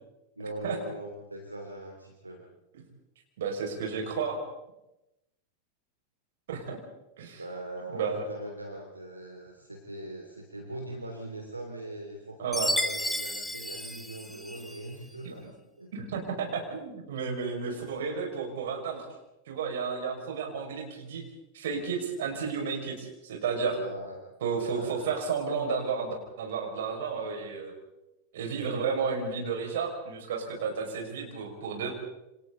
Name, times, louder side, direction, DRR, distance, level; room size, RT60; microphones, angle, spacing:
voice 1, 0.4-2.5 7.4-15.5 15.8-15.9 17.6-18.1 23.7-24.2 24.6-25.1, right 1 dB, 85° right, 2 dB, 3.0 m, -41 dB
voice 2, 3.4-4.4 6.5-6.8 7.2-7.4 7.9-8.2 12.4-12.7 14.3-14.4 15.2-15.5 15.9-19.0 19.5-21.2 21.5-23.8 24.4-27.7 28.3-31.9, right 5 dB, 60° right, 1 dB, 6.0 m, -32 dB
Chime, 12.5-14.8, left 1 dB, 5° left, 1.3 m, -32 dB
28.5 x 26.5 x 4.1 m, 0.94 s
figure-of-eight pair, 90°, 0 cm